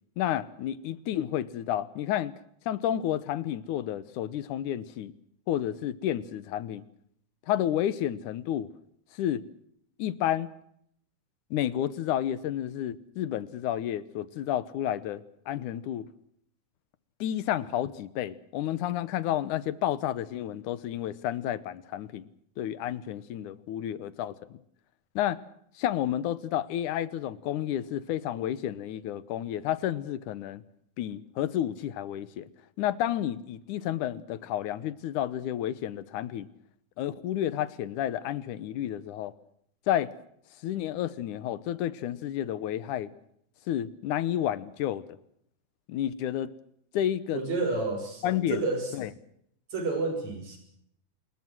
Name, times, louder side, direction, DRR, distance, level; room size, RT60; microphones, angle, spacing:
voice 1, 0.2-2.3 2.7-5.1 5.5-6.8 7.5-8.7 9.1-9.5 10.0-10.5 11.5-16.1 17.2-22.3 22.6-24.6 25.2-25.4 25.8-30.6 31.0-32.5 32.8-36.5 37.0-39.3 39.9-40.1 40.6-43.1 43.7-45.0 45.9-46.5 46.9-47.4 48.2-48.7 48.9-49.1, left 11 dB, 80° left, 17 dB, 2.5 m, -31 dB
voice 2, 47.3-48.9 49.7-50.6, right 3 dB, 60° right, 6 dB, 7.3 m, -30 dB
26.5 x 21.5 x 6.2 m, 0.72 s
omnidirectional pair, 3.5 m